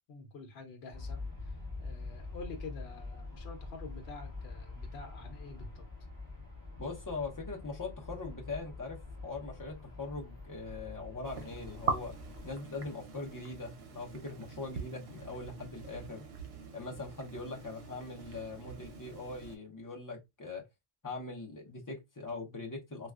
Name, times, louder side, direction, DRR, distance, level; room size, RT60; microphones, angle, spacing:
voice 1, 0.1-5.9, left 4 dB, 75° left, 0.9 m, -48 dB
Aircraft, 0.9-12.5, left 3 dB, 20° right, 1.9 m, -45 dB
voice 2, 6.8-12.1 12.4-16.2 16.7-20.6 21.0-23.1, left 3 dB, 20° left, 0.7 m, -41 dB
sound 1, 11.2-19.6, right 4 dB, 75° right, 0.9 m, -42 dB
3.4 x 2.4 x 2.3 m
omnidirectional pair, 1.1 m